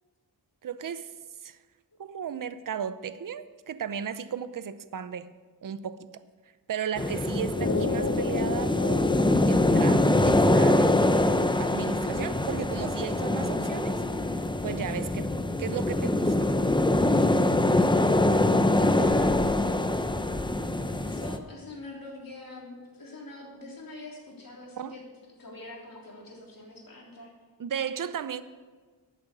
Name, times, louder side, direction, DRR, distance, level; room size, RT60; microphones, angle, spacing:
voice 1, 0.6-1.2 1.4-1.6 2.0-5.3 5.6-6.1 6.7-9.1 9.5-11.3 11.6-14.0 14.6-15.3 15.6-16.5 24.8-25.0 27.6-28.4, right 8 dB, 55° right, 0.6 m, -35 dB
sound 1, 7.0-21.4, left 2 dB, 10° left, 0.6 m, -24 dB
sound 2, 7.5-11.6, left 3 dB, 35° left, 0.9 m, -33 dB
voice 2, 18.3-19.4 21.0-25.0 25.4-27.3, left 2 dB, 55° left, 3.5 m, -43 dB
11.0 x 7.6 x 8.2 m
wide cardioid pair, 110°, 40 cm